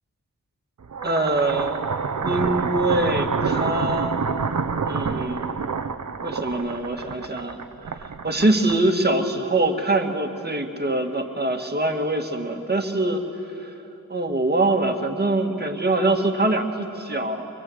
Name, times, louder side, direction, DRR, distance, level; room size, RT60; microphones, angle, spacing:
sound 1, 0.8-9.1, right 5 dB, 55° right, 0.9 m, -27 dB
voice 1, 1.0-1.9 2.2-4.3 4.8-5.6 6.2-7.6 7.9-13.2 13.6-13.7 14.1-17.5, right 2 dB, 30° right, 3 dB, 1.8 m, -24 dB
25.5 x 22.0 x 8.0 m, 2.9 s
wide cardioid pair, 95°, 34 cm